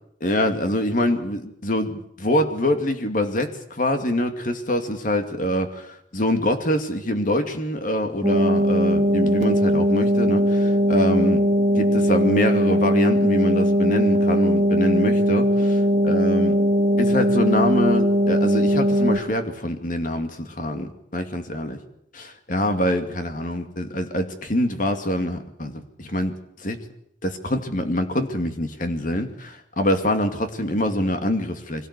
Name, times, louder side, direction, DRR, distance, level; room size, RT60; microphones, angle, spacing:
voice 1, 0.2-11.4 11.7-16.6 17.0-21.8 22.1-26.3 26.6-26.8 27.2-31.9, left 1 dB, 45° left, 6 dB, 2.4 m, -25 dB
sound 1, 8.2-19.2, equal, 40° right, 1.9 m, -19 dB
24.0 x 17.5 x 8.3 m, 0.74 s
head